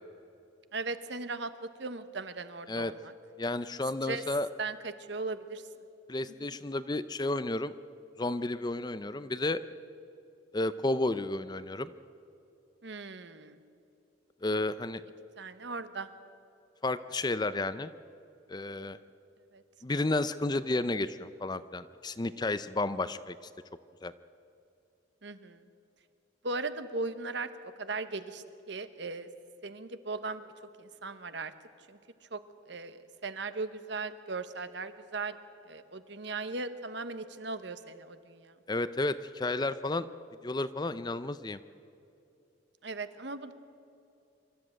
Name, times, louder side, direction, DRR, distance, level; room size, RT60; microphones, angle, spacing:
voice 1, 0.7-3.1 4.0-4.2 4.6-5.6 12.8-13.6 15.4-16.1 19.5-19.6 25.2-25.6 26.4-27.5 27.8-29.3 29.6-30.4 30.8-31.5 31.9-32.0 32.3-32.4 32.7-35.4 35.7-38.5 42.8-43.5, right 3 dB, 60° right, 11 dB, 1.1 m, -38 dB
voice 2, 3.4-4.5 6.1-7.7 8.2-9.6 10.5-11.9 14.4-15.0 16.8-17.9 18.5-19.0 19.8-23.3 24.0-24.1 38.7-40.1 40.4-41.6, left 2 dB, 20° left, 13 dB, 0.5 m, -32 dB
25.0 x 13.5 x 9.0 m, 2.6 s
head